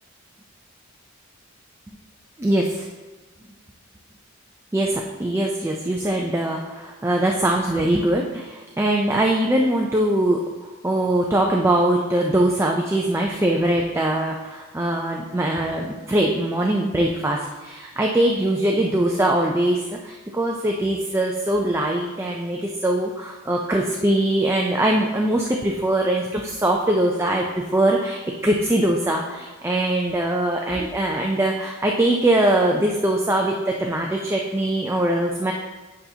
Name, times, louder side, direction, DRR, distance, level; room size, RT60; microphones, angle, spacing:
voice 1, 2.4-2.9 4.7-35.5, right 1 dB, 10° right, 0 dB, 0.4 m, -22 dB
9.1 x 5.6 x 2.8 m, 1.2 s
head